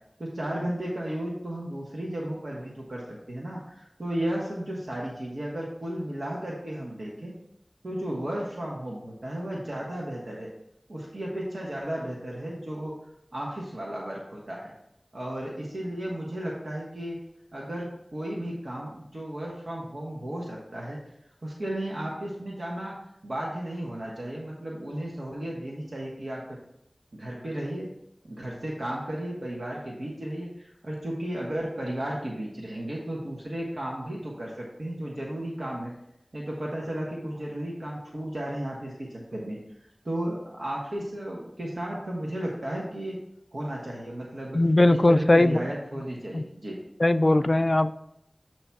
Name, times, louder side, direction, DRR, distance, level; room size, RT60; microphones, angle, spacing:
voice 1, 0.2-7.3 7.8-10.5 10.9-12.9 13.3-14.7 15.1-17.2 17.5-17.9 18.1-21.0 21.4-22.9 23.2-26.4 27.1-27.9 28.3-35.9 36.3-39.6 40.0-43.2 43.5-44.6 45.1-46.8, right 1 dB, 85° right, -4 dB, 1.3 m, -34 dB
voice 2, 44.5-45.6 46.3-46.4 47.0-47.9, left 1 dB, 50° left, 11 dB, 0.3 m, -19 dB
8.0 x 3.0 x 5.9 m, 0.77 s
wide cardioid pair, 50°, 0 cm